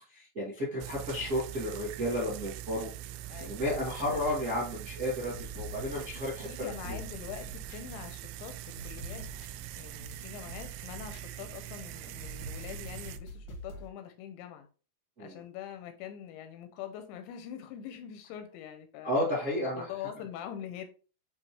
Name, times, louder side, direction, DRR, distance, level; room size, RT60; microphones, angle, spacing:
voice 1, 0.1-2.9 3.4-7.0 15.2-15.4 19.0-19.9, left 1 dB, 40° right, 1.1 m, -32 dB
sound 1, 0.8-13.2, right 13 dB, 85° right, 2.9 m, -43 dB
sound 2, 3.3-4.7 5.0-13.9, equal, 65° left, 1.1 m, -46 dB
voice 2, 6.4-9.3 9.8-14.7 15.2-19.1 19.6-20.9, left 9 dB, 85° left, 2.8 m, -44 dB
9.2 x 3.4 x 3.1 m
omnidirectional pair, 5.4 m